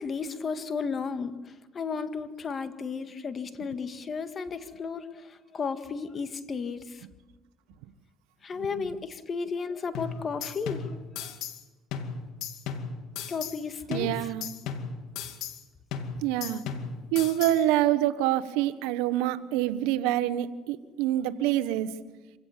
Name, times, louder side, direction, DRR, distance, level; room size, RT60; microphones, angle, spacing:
voice 1, 0.0-7.1 8.4-11.3 13.3-14.1, left 5 dB, 35° left, 9 dB, 1.8 m, -34 dB
sound 1, 9.9-11.6 11.9-13.6 13.9-15.6 15.9-17.6, left 6 dB, 75° left, 2.5 m, -36 dB
voice 2, 13.9-14.5 16.2-16.6 17.1-21.9, right 13 dB, 90° right, 13 dB, 1.2 m, -26 dB
26.5 x 17.0 x 7.3 m, 1.2 s
cardioid pair, 100°, 0 cm